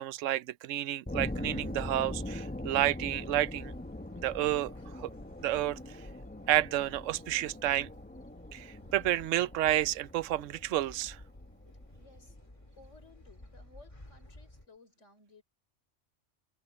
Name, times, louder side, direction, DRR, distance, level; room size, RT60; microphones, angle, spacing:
voice 1, 0.0-3.7 4.2-5.1 5.4-6.0 6.5-7.9 8.5-11.2, right 13 dB, 90° right, 0.9 m, -30 dB
sound 1, 1.1-11.8, left 1 dB, 10° left, 0.8 m, -42 dB
sound 2, 3.1-14.7, left 1 dB, 25° left, 2.9 m, -52 dB
voice 2, 12.0-12.4 12.8-15.4, left 3 dB, 75° left, 4.5 m, -58 dB
omnidirectional pair, 1.3 m